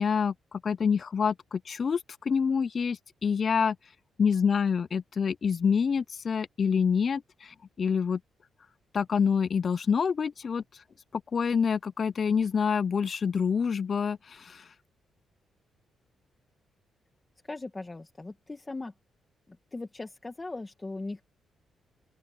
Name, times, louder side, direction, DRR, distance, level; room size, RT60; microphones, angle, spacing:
voice 1, 0.0-3.8 4.2-8.2 8.9-10.6 11.1-14.7, left 6 dB, 40° left, 0.4 m, -27 dB
voice 2, 17.4-18.9 19.5-21.2, left 2 dB, 20° left, 1.9 m, -39 dB
open air
cardioid pair, 130°, 0 cm